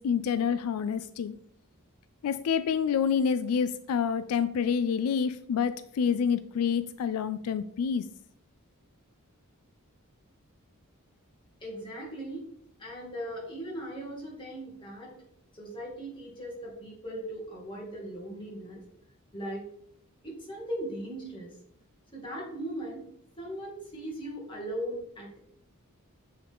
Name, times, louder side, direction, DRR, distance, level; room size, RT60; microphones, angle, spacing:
voice 1, 0.0-1.3 2.2-8.0, left 7 dB, 85° left, 12 dB, 0.3 m, -28 dB
voice 2, 11.6-12.5 12.8-15.2 15.5-18.8 19.3-19.6 20.2-21.5 22.1-23.1 23.4-25.4, right 1 dB, 20° left, -4 dB, 2.0 m, -38 dB
7.9 x 3.8 x 3.5 m, 0.70 s
head